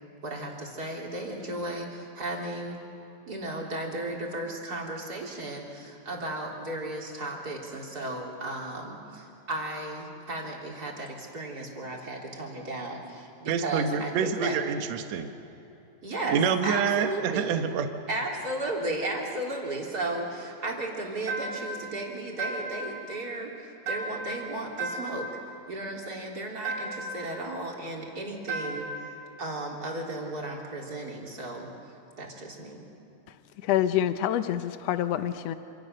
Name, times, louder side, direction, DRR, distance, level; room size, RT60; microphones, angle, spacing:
voice 1, 0.2-2.8 3.2-14.6 16.0-17.5 18.1-25.3 25.7-32.8, right 2 dB, 25° right, -1 dB, 3.6 m, -35 dB
voice 2, 13.5-15.3 16.3-17.9, right 7 dB, 60° right, 6 dB, 2.2 m, -27 dB
sound 1, 21.3-21.8 22.4-22.9 23.9-24.4 24.8-25.3 26.6-27.2 28.5-29.0, right 2 dB, 75° right, 7.8 m, -34 dB
voice 3, 33.6-35.5, left 11 dB, 90° left, 10 dB, 1.4 m, -26 dB
27.0 x 27.0 x 6.6 m, 3.0 s
omnidirectional pair, 3.9 m